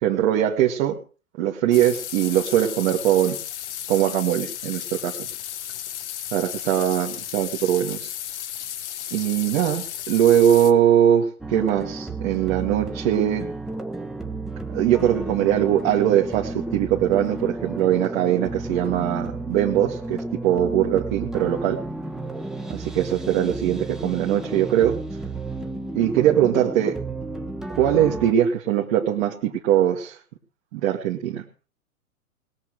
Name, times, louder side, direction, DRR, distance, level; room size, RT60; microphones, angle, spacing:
voice 1, 0.0-1.0 1.4-3.4 3.9-5.3 6.3-8.1 9.1-13.5 14.7-21.8 22.7-25.0 25.9-27.0 27.8-30.2 30.7-31.4, right 11 dB, 40° right, -1 dB, 1.8 m, -21 dB
sound 1, 1.7-10.7, left 11 dB, 50° left, 1.4 m, -34 dB
sound 2, 11.4-28.3, right 2 dB, ahead, 1.1 m, -32 dB
20.0 x 7.3 x 6.4 m, 0.37 s
figure-of-eight pair, 105°, 43 cm